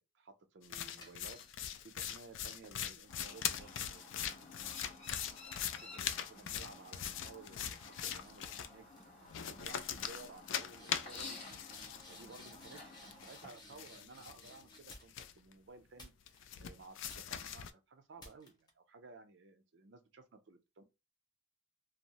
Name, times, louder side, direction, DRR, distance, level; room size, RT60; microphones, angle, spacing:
voice 1, 0.1-1.4 1.8-4.7 5.4-8.8 9.2-11.3 12.1-16.1 16.6-20.8, right 3 dB, 65° right, 0.5 m, -56 dB
sound 1, 0.6-8.7 9.3-12.8 13.1-15.5 16.3-17.7, left 9 dB, 70° left, 0.3 m, -41 dB
sound 2, 1.0-2.0 2.6-6.2 6.6-7.0 7.7-7.9 8.2-8.7 8.9-9.3 9.6-9.7 9.9-15.4 16.0-16.6 17.1-17.5 18.2-18.7, left 2 dB, 20° left, 0.6 m, -59 dB
Chirp tweet, 3.1-13.5, left 3 dB, 35° left, 1.2 m, -53 dB
2.6 x 2.0 x 2.8 m
head